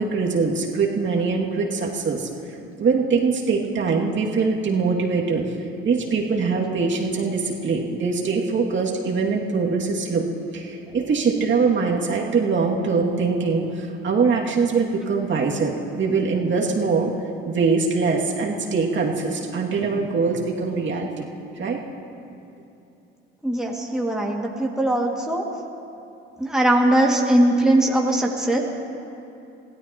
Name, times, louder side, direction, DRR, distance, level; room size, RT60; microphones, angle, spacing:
voice 1, 0.0-2.3 2.8-5.4 5.8-10.3 10.5-17.1 17.4-21.3 21.5-21.8, right 4 dB, 40° right, -2 dB, 2.5 m, -23 dB
voice 2, 23.4-25.5 26.4-28.6, right 1 dB, ahead, -2 dB, 2.3 m, -20 dB
25.0 x 16.5 x 3.0 m, 2.7 s
hypercardioid pair, 65°, 29 cm